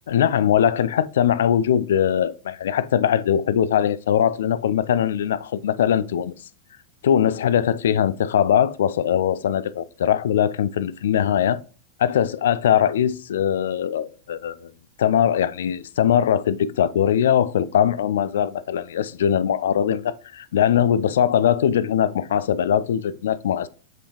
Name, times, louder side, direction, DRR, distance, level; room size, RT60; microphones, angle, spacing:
voice 1, 0.1-6.3 7.0-11.6 12.0-14.7 15.0-23.7, left 9 dB, 60° left, 0.3 m, -21 dB
7.4 x 5.0 x 2.9 m
figure-of-eight pair, 90°, 0 cm